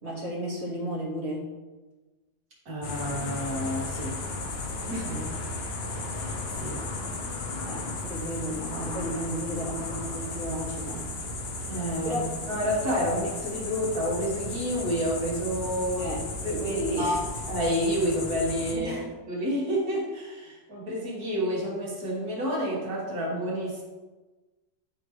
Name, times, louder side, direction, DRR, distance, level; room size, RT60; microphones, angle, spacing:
voice 1, 0.0-1.5 5.1-5.3 7.6-11.1 12.0-12.3 16.0-17.2 18.7-19.1, right 1 dB, 40° right, -4 dB, 1.9 m, -33 dB
voice 2, 2.7-4.2 4.9-5.1 6.2-6.8 11.7-12.2 12.5-16.1 16.4-16.6 17.0-17.2 17.5-18.9 19.3-23.8, equal, 65° right, -5 dB, 2.5 m, -29 dB
sound 1, 2.8-18.8, left 2 dB, 50° left, 0.8 m, -35 dB
11.0 x 3.6 x 3.2 m, 1.2 s
omnidirectional pair, 1.7 m